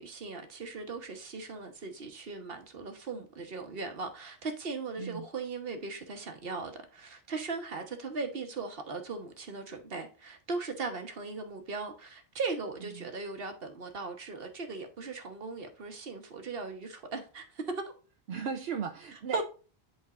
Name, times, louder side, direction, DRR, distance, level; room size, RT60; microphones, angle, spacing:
voice 1, 0.0-17.8 19.3-19.4, right 4 dB, 65° right, 1.4 m, -38 dB
voice 2, 18.3-19.4, right 6 dB, 80° right, 0.9 m, -36 dB
11.5 x 3.9 x 2.5 m
omnidirectional pair, 1.0 m